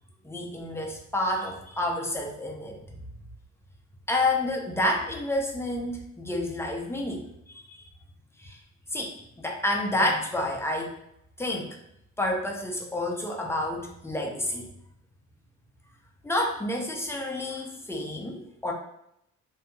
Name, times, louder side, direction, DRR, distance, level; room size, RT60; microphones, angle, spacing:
voice 1, 0.2-2.8 4.1-7.8 8.4-8.6 8.9-11.0 11.4-11.7 12.2-14.7 16.2-18.7, left 1 dB, 10° left, 0 dB, 0.5 m, -29 dB
2.8 x 2.6 x 2.3 m, 0.77 s
cardioid pair, 90°, 30 cm